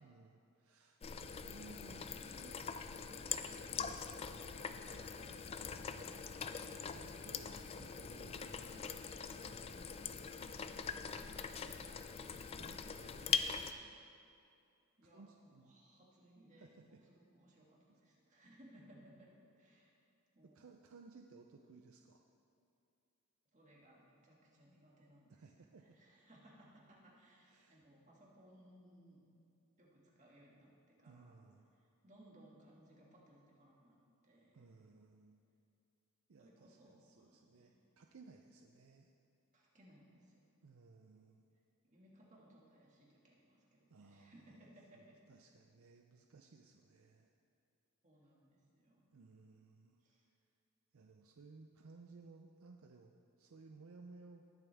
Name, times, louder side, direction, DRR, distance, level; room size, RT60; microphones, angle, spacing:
voice 1, 0.0-3.6 4.3-5.1 6.5-11.0 12.4-13.5 15.0-15.8 16.6-17.0 17.9-18.0 20.4-22.2 25.3-26.0 27.5-27.8 31.0-31.7 34.5-35.4 36.3-39.1 40.6-41.5 43.9-44.7 44.9-47.4 49.1-50.0 50.9-54.4, right 3 dB, 65° right, 3 dB, 0.5 m, -60 dB
sound 1, 1.0-13.7, left 6 dB, 25° left, 0.3 m, -43 dB
voice 2, 4.8-6.2 10.5-11.7 13.0-13.9 15.0-17.7 18.0-19.3 19.6-19.9 20.3-20.6 23.5-25.4 25.9-29.2 29.8-31.4 31.8-34.0 34.2-34.7 36.4-37.8 39.5-40.4 41.8-45.2 48.0-49.1 50.0-50.3, right 1 dB, 35° right, -4 dB, 2.0 m, -64 dB
20.0 x 7.1 x 3.5 m, 2.5 s
head